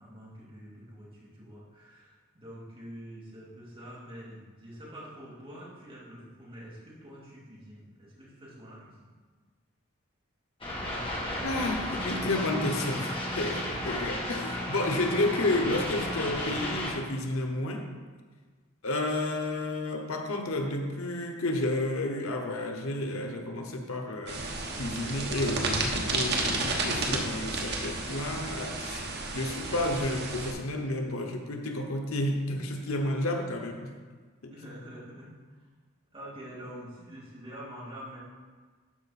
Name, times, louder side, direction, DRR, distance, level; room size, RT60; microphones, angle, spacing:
voice 1, 0.0-9.1 34.5-35.3 36.1-38.2, equal, 25° right, -7 dB, 2.7 m, -46 dB
sound 1, 10.6-16.9, left 1 dB, 25° left, 2.1 m, -33 dB
voice 2, 11.4-17.8 18.8-24.4 24.8-29.0 29.3-33.9 34.4-34.5, left 2 dB, 90° left, 3 dB, 1.0 m, -31 dB
sound 2, 24.3-30.5, right 3 dB, 55° right, 1.2 m, -32 dB
12.5 x 4.9 x 4.2 m, 1.5 s
head